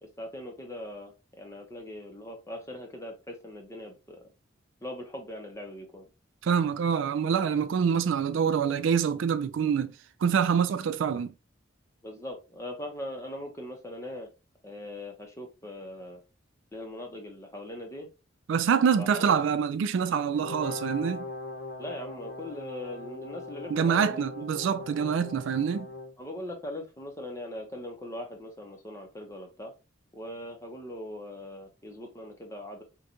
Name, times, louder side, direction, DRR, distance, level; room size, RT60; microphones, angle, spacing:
voice 1, 0.0-4.2 4.8-6.0 12.0-14.3 14.6-16.2 16.7-18.1 19.0-19.3 21.8-24.2 26.2-29.7 30.1-32.8, left 1 dB, 15° left, 0.6 m, -40 dB
voice 2, 6.4-9.9 10.2-11.3 18.5-21.2 23.7-25.9, right 7 dB, 70° right, 0.3 m, -26 dB
Brass instrument, 20.3-26.1, left 2 dB, 45° left, 0.7 m, -40 dB
3.8 x 2.2 x 2.8 m
head